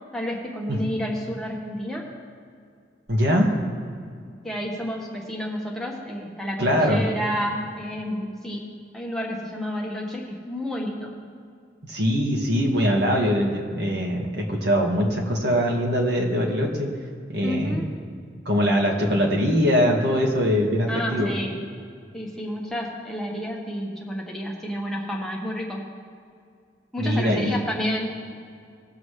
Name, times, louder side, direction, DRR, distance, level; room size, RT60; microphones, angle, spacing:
voice 1, 0.1-2.1 4.4-11.1 17.4-17.9 20.9-21.6 22.1-25.8 26.9-28.2, equal, ahead, -3 dB, 1.3 m, -30 dB
voice 2, 3.1-3.5 6.6-7.0 11.9-16.9 17.3-17.7 18.4-21.3 27.0-27.5, equal, 65° right, 0 dB, 1.7 m, -22 dB
19.5 x 7.3 x 3.3 m, 2.2 s
head